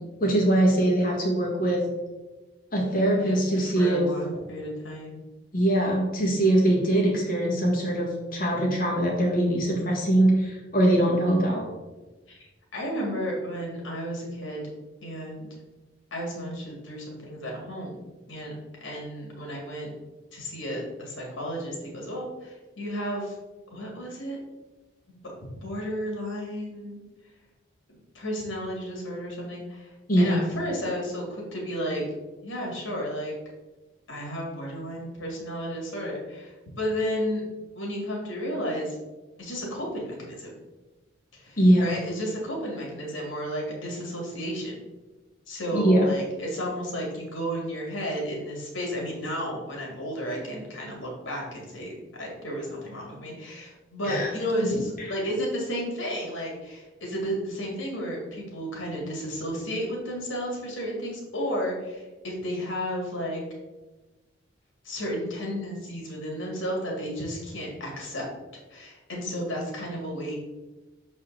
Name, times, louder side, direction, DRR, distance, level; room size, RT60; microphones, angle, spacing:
voice 1, 0.2-1.8 2.7-4.1 5.5-11.7 30.1-30.4 41.6-42.0 45.7-46.1 54.0-54.3, right 1 dB, 45° left, -2 dB, 1.6 m, -22 dB
voice 2, 3.1-5.2 11.3-11.4 12.3-14.6 15.0-15.5 16.1-18.0 18.3-18.6 18.8-19.9 20.3-23.4 23.7-24.4 25.1-27.0 28.1-32.0 32.4-33.3 34.1-37.4 37.7-39.0 39.4-40.5 41.3-44.8 45.5-63.4 64.8-68.3 68.7-70.3, equal, 80° left, -1 dB, 2.1 m, -33 dB
6.3 x 4.3 x 3.8 m, 1.1 s
head